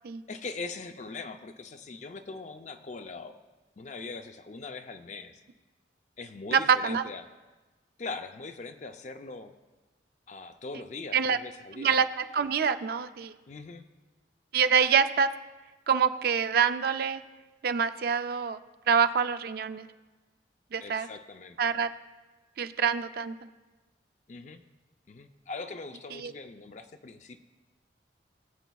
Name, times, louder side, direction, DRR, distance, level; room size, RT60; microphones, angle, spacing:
voice 1, 0.3-3.3 3.8-5.4 6.2-7.3 8.0-9.5 10.3-11.9 13.5-13.8 20.8-21.7 24.3-24.6 25.1-27.4, left 3 dB, 40° left, 8 dB, 0.5 m, -41 dB
voice 2, 6.5-7.0 11.1-11.4 11.8-13.3 14.5-15.3 15.9-17.2 17.6-18.6 18.9-19.9 20.7-21.1 21.6-21.9 22.6-23.5 26.2-26.3, right 6 dB, 55° right, 10 dB, 0.4 m, -26 dB
19.5 x 7.9 x 2.3 m, 1.2 s
head